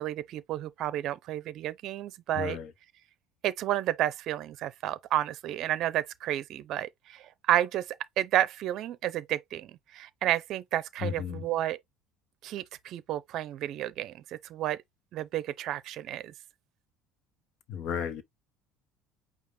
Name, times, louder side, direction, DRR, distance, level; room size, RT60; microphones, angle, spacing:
voice 1, 0.0-2.6 3.4-11.8 12.4-14.8 15.1-16.3, right 13 dB, 50° right, 0.6 m, -31 dB
voice 2, 2.3-2.7 11.0-11.4 17.7-18.2, left 8 dB, 50° left, 0.9 m, -33 dB
5.2 x 2.4 x 3.7 m
cardioid pair, 150°, 0 cm